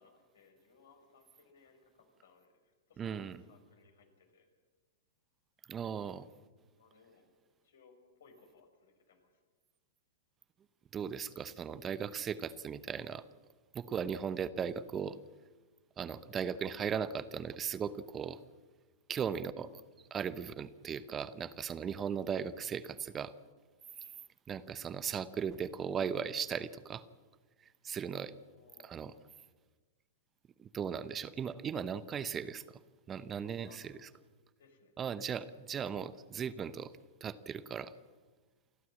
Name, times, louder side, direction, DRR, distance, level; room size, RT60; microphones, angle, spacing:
voice 1, 0.0-4.5 6.8-7.3 7.6-9.4 28.4-29.2 33.4-34.2 34.6-34.9, left 4 dB, 70° left, 5 dB, 4.9 m, -64 dB
voice 2, 3.0-3.4 5.7-6.3 10.9-13.2 13.7-15.2 16.0-18.4 19.1-19.8 20.1-23.3 24.5-27.0 27.8-28.3 28.8-29.1 30.6-32.6 33.1-33.9 35.0-36.9 37.2-37.9, right 7 dB, 25° right, 14 dB, 0.9 m, -37 dB
28.5 x 12.5 x 7.7 m, 1.3 s
hypercardioid pair, 105°, 0 cm